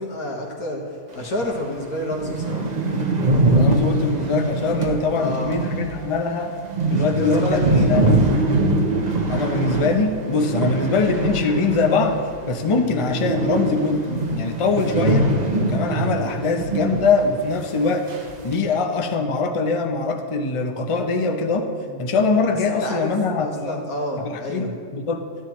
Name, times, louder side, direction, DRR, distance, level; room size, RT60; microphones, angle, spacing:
voice 1, 0.0-2.7 5.1-5.6 6.9-8.2 21.9-22.0 22.7-23.1 23.4-24.7, equal, 90° left, -1 dB, 2.1 m, -29 dB
sound 1, 1.4-1.5 1.8-1.9 2.1-12.3 12.6-17.1 17.4-17.5 18.1-18.5, right 2 dB, 35° right, 1.0 m, -22 dB
voice 2, 3.5-6.5 6.9-8.3 9.3-12.2 12.5-15.3 15.7-18.1 18.4-21.6 22.0-23.8 24.2-25.2, left 3 dB, 30° left, 4 dB, 0.6 m, -22 dB
14.5 x 10.0 x 3.1 m, 2.3 s
omnidirectional pair, 1.5 m